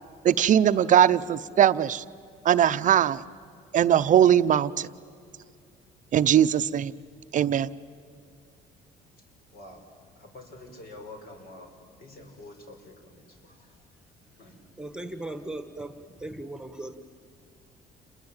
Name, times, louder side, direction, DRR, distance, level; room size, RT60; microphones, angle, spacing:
voice 1, 0.2-2.0 2.4-3.2 3.7-4.9 6.1-6.9 7.3-7.7, right 10 dB, 50° right, 13 dB, 0.6 m, -20 dB
voice 2, 9.5-9.8 10.2-11.7 12.0-13.6 14.4-14.6, left 2 dB, 65° left, 4 dB, 5.6 m, -47 dB
voice 3, 14.8-16.9, right 1 dB, 5° right, 9 dB, 1.5 m, -38 dB
29.0 x 21.5 x 8.9 m, 2.3 s
cardioid pair, 110°, 17 cm